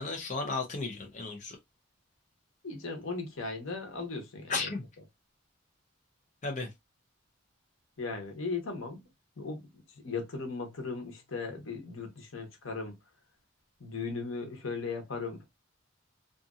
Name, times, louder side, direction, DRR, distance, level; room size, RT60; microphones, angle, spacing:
voice 1, 0.0-1.6 4.5-4.8 6.4-6.7, left 3 dB, 35° left, 0.7 m, -34 dB
voice 2, 2.6-4.7 8.0-9.0 9.4-9.6 10.0-12.9 13.8-15.4, left 4 dB, 85° left, 1.0 m, -37 dB
2.7 x 2.5 x 2.4 m
head